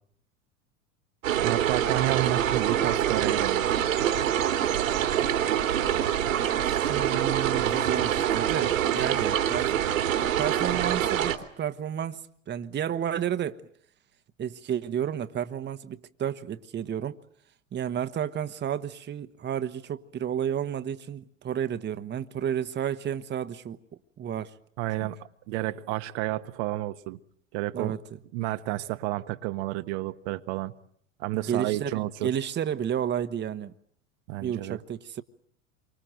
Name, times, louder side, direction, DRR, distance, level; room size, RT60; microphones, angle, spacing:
sound 1, 1.2-11.4, right 10 dB, 75° right, 2.8 m, -25 dB
voice 1, 1.4-3.7 24.8-25.2 25.5-27.2 27.5-27.9 28.3-30.7 31.2-32.3 34.3-34.8, right 16 dB, 55° right, 1.4 m, -30 dB
voice 2, 6.4-9.9 10.2-13.7 14.4-17.2 17.7-23.8 24.2-24.5 27.7-28.0 31.3-31.9 32.2-33.7 34.4-35.2, right 9 dB, 25° right, 1.3 m, -31 dB
27.0 x 24.5 x 7.8 m
hypercardioid pair, 85°, 39 cm